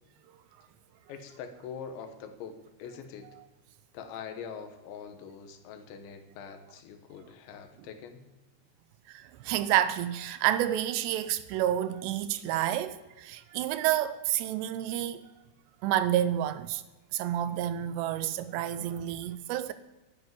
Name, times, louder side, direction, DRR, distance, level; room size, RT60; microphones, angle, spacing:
voice 1, 1.1-3.3 3.9-8.3, left 6 dB, 90° left, 3.6 m, -43 dB
voice 2, 9.1-15.3 15.8-16.8 17.1-19.7, right 12 dB, 80° right, 2.7 m, -29 dB
10.0 x 9.6 x 9.5 m
omnidirectional pair, 5.1 m